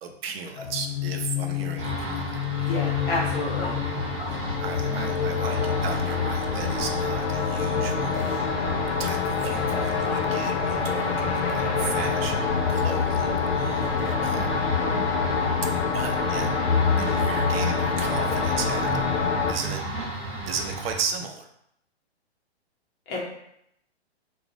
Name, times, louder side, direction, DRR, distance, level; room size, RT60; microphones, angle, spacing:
voice 1, 0.0-2.4 4.3-8.2 8.6-8.7 9.0-14.6 15.6-16.5 17.0-18.9 19.5-19.8 20.5-21.5, right 5 dB, 60° right, 4 dB, 0.5 m, -35 dB
sound 1, 0.6-19.5, left 6 dB, 80° left, 0.5 m, -26 dB
sound 2, 1.8-21.0, right 1 dB, 20° right, 0.7 m, -33 dB
voice 2, 2.6-3.7 23.1-23.2, left 2 dB, 15° left, -5 dB, 0.4 m, -29 dB
2.4 x 2.0 x 2.6 m, 0.76 s
hypercardioid pair, 130°, 33 cm